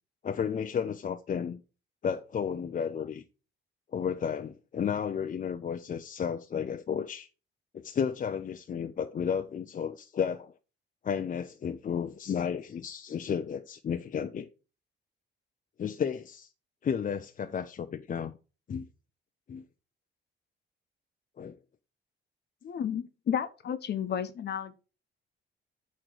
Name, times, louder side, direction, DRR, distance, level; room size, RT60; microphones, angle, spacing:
voice 1, 0.2-1.6 2.0-3.2 3.9-7.3 7.7-10.5 11.0-14.5 15.8-16.5 16.8-18.4 18.7-18.9 19.5-19.6 21.4-21.6, left 7 dB, 40° left, 0.6 m, -32 dB
voice 2, 22.6-24.7, left 8 dB, 55° left, 1.1 m, -32 dB
8.8 x 3.2 x 6.4 m
cardioid pair, 90°, 20 cm